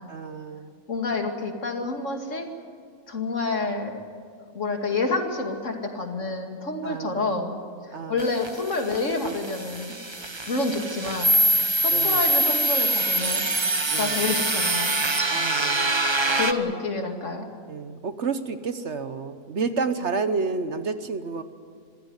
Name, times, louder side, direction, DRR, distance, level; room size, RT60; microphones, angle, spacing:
voice 1, 0.1-0.7 6.8-7.3 7.9-8.2 11.9-12.2 13.9-14.3 15.3-16.0 17.7-21.4, right 4 dB, 55° right, 10 dB, 1.3 m, -30 dB
voice 2, 0.9-2.5 3.1-4.0 4.5-7.5 7.8-10.0 10.4-11.4 11.8-13.5 13.8-14.9 16.3-17.5, left 3 dB, 60° left, 3 dB, 2.7 m, -28 dB
sound 1, 8.2-16.5, right 1 dB, 20° right, 0.9 m, -24 dB
26.0 x 15.5 x 9.7 m, 2.1 s
omnidirectional pair, 1.5 m